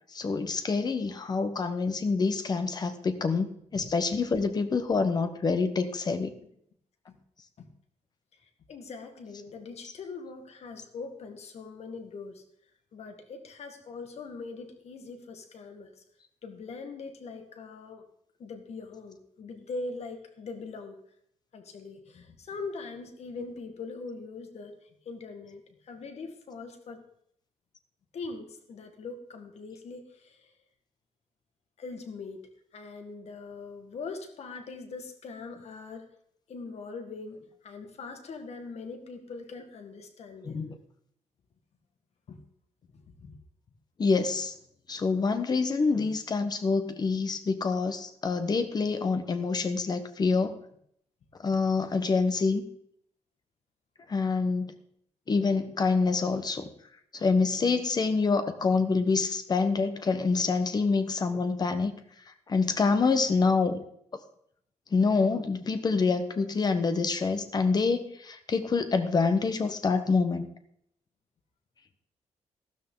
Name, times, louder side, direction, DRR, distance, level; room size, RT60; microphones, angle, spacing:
voice 1, 0.1-6.3 40.4-40.8 44.0-44.5 44.9-50.5 51.4-52.7 54.1-54.7 55.3-56.7 57.2-61.9 62.5-63.8 64.9-70.5, left 4 dB, 35° left, 9 dB, 1.1 m, -26 dB
voice 2, 8.7-12.4 12.9-15.9 16.4-18.0 18.4-21.0 21.5-24.8 25.1-27.0 28.1-30.4 31.8-32.4 32.7-36.0 36.5-40.6 42.3-42.4 43.1-43.4, left 4 dB, 60° left, 6 dB, 1.8 m, -41 dB
14.0 x 12.5 x 3.9 m, 0.68 s
wide cardioid pair, 145°, 12 cm